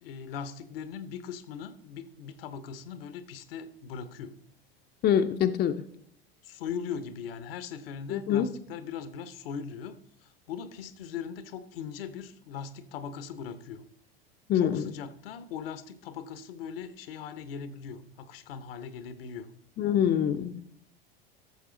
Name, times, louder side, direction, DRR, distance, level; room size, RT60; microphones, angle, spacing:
voice 1, 0.0-4.3 6.4-13.8 14.5-19.5, left 7 dB, 70° left, 13 dB, 1.0 m, -40 dB
voice 2, 5.0-5.8 8.1-8.5 14.5-14.8 19.8-20.6, left 9 dB, 35° left, 7 dB, 0.7 m, -25 dB
13.5 x 6.7 x 3.8 m, 0.66 s
hypercardioid pair, 85°, 30 cm